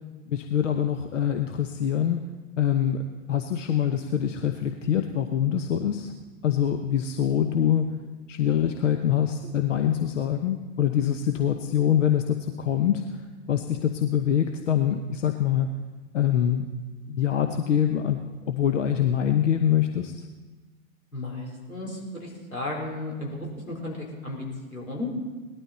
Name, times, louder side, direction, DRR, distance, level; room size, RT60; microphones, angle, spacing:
voice 1, 0.3-2.2 2.6-6.1 6.4-7.8 8.3-13.1 13.5-15.8 16.1-16.7 17.1-20.1, left 9 dB, 65° left, 6 dB, 1.0 m, -24 dB
voice 2, 21.1-24.5 24.7-25.1, left 2 dB, 90° left, -3 dB, 4.2 m, -34 dB
18.5 x 12.5 x 4.3 m, 1.3 s
figure-of-eight pair, 105°, 40 cm